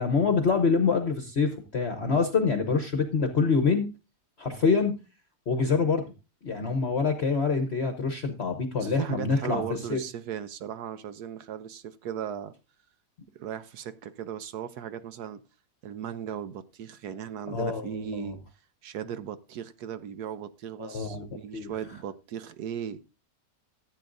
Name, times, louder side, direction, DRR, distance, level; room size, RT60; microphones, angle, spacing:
voice 1, 0.0-3.8 4.4-4.9 5.5-6.0 6.4-9.6 9.9-10.0 17.5-18.3 20.8-21.7, left 4 dB, 45° left, 1.1 m, -26 dB
voice 2, 8.8-12.5 13.4-15.4 15.8-18.4 18.8-23.0, right 9 dB, 70° right, 1.2 m, -37 dB
14.5 x 8.6 x 2.6 m
omnidirectional pair, 1.9 m